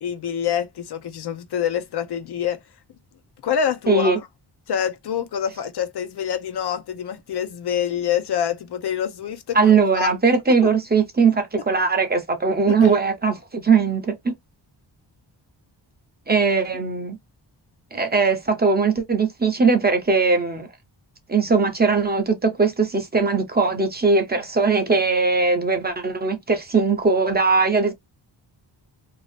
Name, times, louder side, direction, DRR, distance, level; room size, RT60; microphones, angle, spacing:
voice 1, 0.0-2.6 3.4-4.3 4.7-10.1 12.8-12.9, left 9 dB, 65° left, 0.6 m, -26 dB
voice 2, 3.9-4.2 9.5-14.3 16.3-17.2 17.9-20.7 21.3-27.9, right 4 dB, 25° right, 0.5 m, -20 dB
2.7 x 2.3 x 3.2 m
wide cardioid pair, 160°, 43 cm